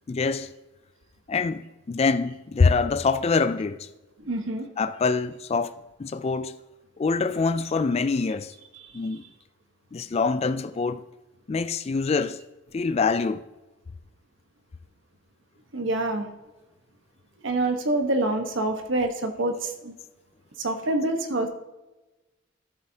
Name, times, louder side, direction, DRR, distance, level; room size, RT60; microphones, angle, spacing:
voice 1, 0.1-0.5 1.3-3.9 4.8-5.7 6.0-6.6 7.0-8.5 8.9-9.2 9.9-11.0 11.5-12.4 12.7-13.4, left 4 dB, 30° left, 0.3 m, -25 dB
voice 2, 4.2-4.7 15.7-16.2 17.4-19.9 20.6-21.5, right 2 dB, 70° right, 1.2 m, -26 dB
13.5 x 7.2 x 2.8 m
head